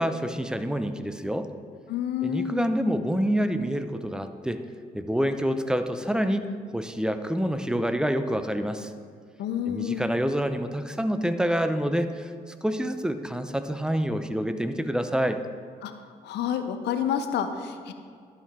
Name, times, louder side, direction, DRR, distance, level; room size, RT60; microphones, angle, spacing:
voice 1, 0.0-1.5 2.2-4.6 4.9-8.9 9.7-15.4, equal, 5° right, 9 dB, 0.6 m, -27 dB
voice 2, 1.9-2.7 9.4-10.0 15.8-15.9 16.2-17.9, left 9 dB, 80° left, 8 dB, 0.6 m, -29 dB
12.0 x 4.8 x 3.7 m, 2.1 s
supercardioid pair, 45°, 17 cm